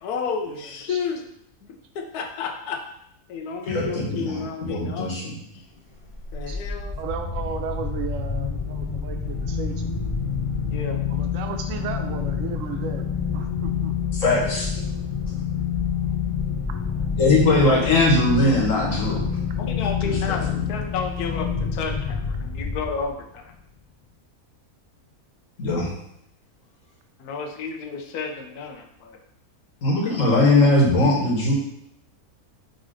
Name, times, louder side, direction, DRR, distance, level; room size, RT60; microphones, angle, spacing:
voice 1, 0.0-1.2 1.7-2.8 3.3-5.1 5.5-5.6 6.3-6.9 10.6-11.0 19.6-23.5 27.2-29.2, left 5 dB, 85° left, 4 dB, 1.3 m, -31 dB
voice 2, 3.7-5.3 14.1-14.8 17.2-19.2 20.1-20.6 25.6-25.9 29.8-31.5, left 2 dB, 60° left, -2 dB, 1.6 m, -20 dB
sound 1, 6.0-23.3, left 7 dB, 30° left, 0.6 m, -27 dB
voice 3, 7.0-9.9 11.1-13.1 13.3-13.9, right 6 dB, 65° right, 6 dB, 1.0 m, -34 dB
5.0 x 4.0 x 4.9 m, 0.74 s
omnidirectional pair, 1.6 m